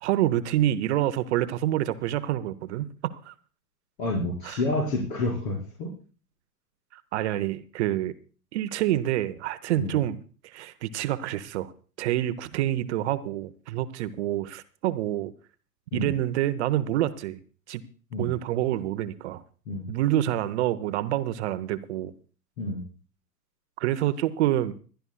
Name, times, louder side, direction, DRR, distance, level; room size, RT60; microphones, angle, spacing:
voice 1, 0.0-3.3 4.4-4.6 6.9-8.1 8.5-10.2 10.4-11.7 12.0-15.3 15.9-17.4 17.7-17.8 18.2-19.4 19.9-22.1 23.8-24.7, right 13 dB, 45° right, 13 dB, 0.7 m, -27 dB
voice 2, 4.0-5.9 9.8-9.9 15.9-16.1 18.1-18.3 19.7-19.9 22.6-22.8, left 2 dB, 55° left, -1 dB, 4.8 m, -29 dB
25.5 x 11.5 x 2.2 m, 0.38 s
figure-of-eight pair, 100°, 47 cm